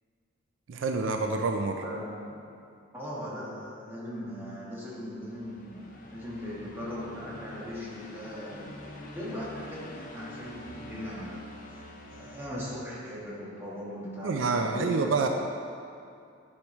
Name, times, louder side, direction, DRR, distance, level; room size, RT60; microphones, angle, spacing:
voice 1, 0.7-1.8 14.2-15.3, right 4 dB, 70° right, 4 dB, 0.4 m, -27 dB
voice 2, 1.8-2.4 2.9-8.8 9.1-11.4 11.7-15.3, equal, 10° right, -8 dB, 1.4 m, -39 dB
sound 1, 5.1-13.4, left 1 dB, 45° left, 0.7 m, -47 dB
10.0 x 4.8 x 3.1 m, 2.5 s
head